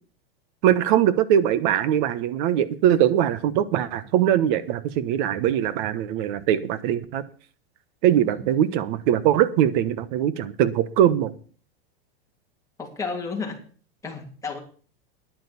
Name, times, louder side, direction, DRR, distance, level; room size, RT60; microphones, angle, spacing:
voice 1, 0.6-7.2 8.0-11.3, right 10 dB, 50° right, 15 dB, 1.2 m, -21 dB
voice 2, 8.1-8.6 12.8-13.6 14.0-14.6, left 4 dB, 10° left, 0 dB, 3.0 m, -32 dB
10.5 x 9.4 x 7.0 m, 0.41 s
supercardioid pair, 150°, 31 cm